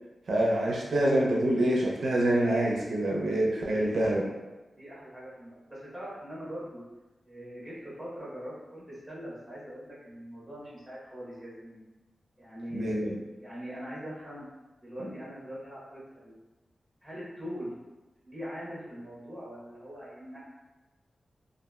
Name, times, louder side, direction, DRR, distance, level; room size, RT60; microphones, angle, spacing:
voice 1, 0.3-4.3 12.7-13.2 15.0-15.1, right 1 dB, 75° right, -2 dB, 0.4 m, -26 dB
voice 2, 3.6-4.3 4.8-6.8 7.2-11.8 12.4-12.9 13.4-14.5 14.8-16.4 17.0-17.8 18.2-20.4, equal, ahead, -9 dB, 1.0 m, -42 dB
2.9 x 2.3 x 2.3 m, 1.1 s
wide cardioid pair, 165°, 0 cm